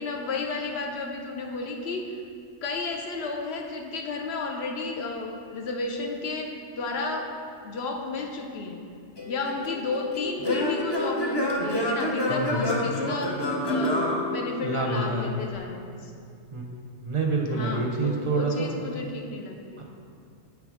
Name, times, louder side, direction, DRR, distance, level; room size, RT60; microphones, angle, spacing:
voice 1, 0.0-2.2 2.6-7.3 7.6-8.8 9.3-16.1 17.5-19.8, left 3 dB, 65° left, 2 dB, 0.8 m, -33 dB
Singing / Plucked string instrument, 9.2-15.0, left 1 dB, 30° left, 0.5 m, -28 dB
voice 2, 12.3-12.6 14.6-15.4 16.5-16.6 17.0-18.7 19.8-19.9, right 3 dB, 40° right, 0 dB, 0.5 m, -27 dB
7.4 x 3.4 x 4.9 m, 2.4 s
omnidirectional pair, 1.2 m